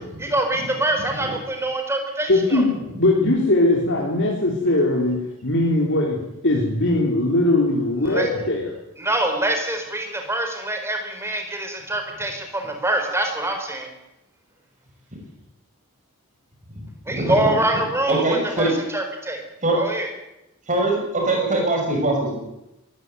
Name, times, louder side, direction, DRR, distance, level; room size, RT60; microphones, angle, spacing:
voice 1, 0.2-2.6 8.0-8.3 9.0-13.9 17.1-19.4 19.8-20.1, right 1 dB, 10° right, 4 dB, 4.4 m, -25 dB
voice 2, 2.3-5.2 5.4-8.8, left 2 dB, 55° left, -1 dB, 3.8 m, -20 dB
voice 3, 16.7-17.3 18.1-18.7 19.6-19.8 20.7-22.4, right 2 dB, 35° right, 1 dB, 6.1 m, -22 dB
22.5 x 14.5 x 9.3 m, 0.91 s
head